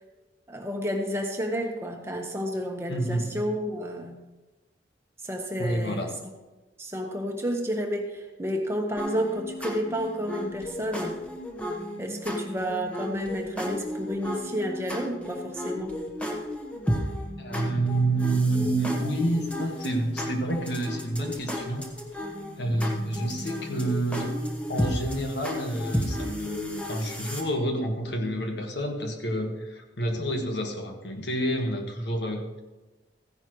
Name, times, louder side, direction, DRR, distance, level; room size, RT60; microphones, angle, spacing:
voice 1, 0.5-4.2 5.2-6.3 6.8-11.2 12.0-16.0, equal, 15° right, 2 dB, 1.2 m, -31 dB
voice 2, 2.9-3.3 5.6-6.1 17.4-21.9 22.5-24.3 24.7-32.6, right 1 dB, 75° left, 3 dB, 1.6 m, -28 dB
sound 1, 9.0-27.4, equal, 5° left, 1.2 m, -33 dB
15.0 x 10.5 x 3.2 m, 1.1 s
head